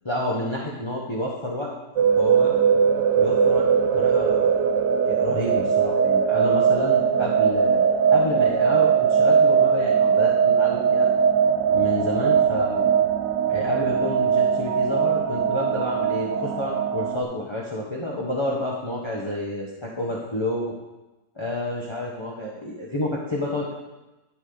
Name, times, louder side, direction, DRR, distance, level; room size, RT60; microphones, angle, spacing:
voice 1, 0.0-1.7 2.2-2.5 3.2-3.7 3.9-4.7 5.0-11.1 11.7-12.9 13.5-20.7 21.4-23.7, left 1 dB, 20° left, -3 dB, 1.1 m, -29 dB
sound 1, 2.0-17.2, right 7 dB, 80° right, 1.5 m, -20 dB
12.0 x 7.5 x 4.0 m, 1.1 s
omnidirectional pair, 1.9 m